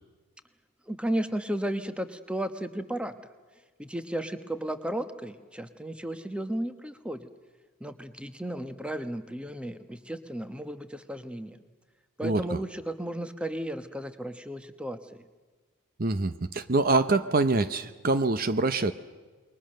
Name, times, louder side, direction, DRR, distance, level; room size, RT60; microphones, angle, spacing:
voice 1, 0.9-3.1 3.8-7.3 7.8-11.6 12.2-15.0, right 1 dB, 5° right, 9 dB, 1.1 m, -34 dB
voice 2, 12.2-12.6 16.0-18.9, right 3 dB, 40° right, 11 dB, 0.7 m, -25 dB
28.5 x 23.0 x 6.6 m, 1.4 s
head